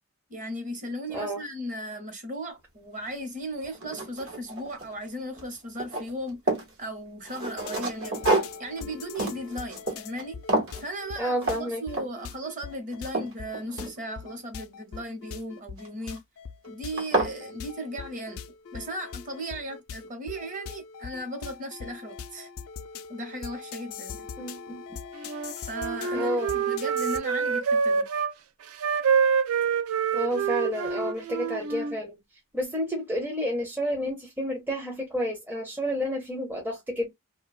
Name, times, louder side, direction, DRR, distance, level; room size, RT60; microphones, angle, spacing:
voice 1, 0.3-8.2 8.6-10.4 10.8-16.2 16.7-18.4 18.7-22.5 23.1-24.3 25.7-28.1, equal, 35° right, 0.9 m, -36 dB
voice 2, 1.1-1.4 11.2-11.8 24.4-24.8 26.1-26.5 30.1-32.2 32.5-37.1, equal, 10° right, 0.5 m, -30 dB
sound 1, 3.1-3.2 3.6-5.1 5.3-6.7 7.2-10.2 10.5-10.8 11.4-11.6 11.9-12.3 12.7-14.3 15.8-16.2 16.6-16.7 17.0-17.4, right 2 dB, 65° right, 1.0 m, -29 dB
sound 2, 7.6-27.2, left 6 dB, 75° left, 0.4 m, -41 dB
Wind instrument woodwind instrument, 25.2-28.3 28.8-32.0, right 6 dB, 85° right, 0.4 m, -26 dB
2.7 x 2.2 x 2.3 m
head